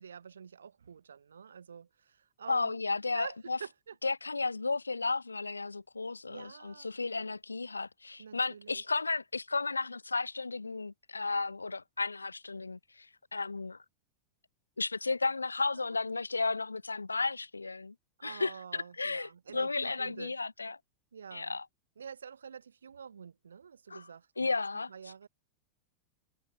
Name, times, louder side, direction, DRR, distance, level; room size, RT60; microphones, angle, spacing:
voice 1, 0.0-2.8 3.1-4.0 6.3-6.9 8.2-8.8 15.7-16.0 18.2-20.4 21.1-21.6 22.0-24.6 24.9-25.3, right 7 dB, 70° right, 3.7 m, -47 dB
voice 2, 2.5-3.6 4.0-13.8 14.8-17.9 18.2-20.8 21.3-21.7 23.9-24.0 24.4-24.9, left 3 dB, 80° left, 1.8 m, -34 dB
figure-of-eight pair, 90°, 0 cm